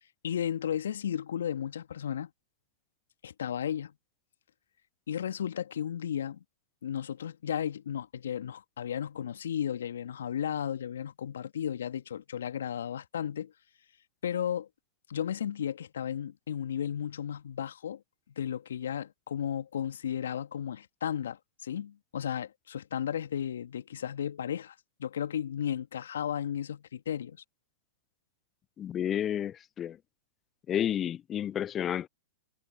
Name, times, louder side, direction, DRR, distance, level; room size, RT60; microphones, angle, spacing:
voice 1, 0.2-2.3 3.2-3.9 5.1-6.4 6.8-13.5 14.2-14.7 15.1-18.0 18.4-27.4, left 9 dB, 70° left, 2.0 m, -34 dB
voice 2, 28.8-30.0 30.7-32.1, left 10 dB, 25° left, 0.3 m, -31 dB
figure-of-eight pair, 105°, 0 cm